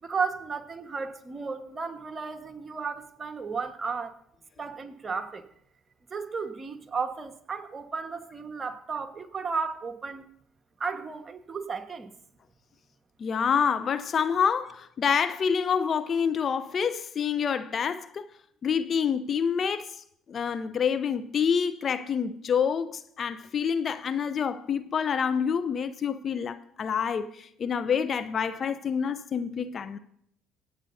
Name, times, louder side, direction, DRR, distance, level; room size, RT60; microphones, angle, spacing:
voice 1, 0.0-4.2 4.6-5.4 6.1-10.3 10.8-12.1, right 5 dB, 35° right, 1.4 m, -34 dB
voice 2, 13.2-18.3 18.6-30.0, left 7 dB, 45° left, 0.7 m, -27 dB
24.5 x 8.8 x 2.7 m
hypercardioid pair, 55°, 0 cm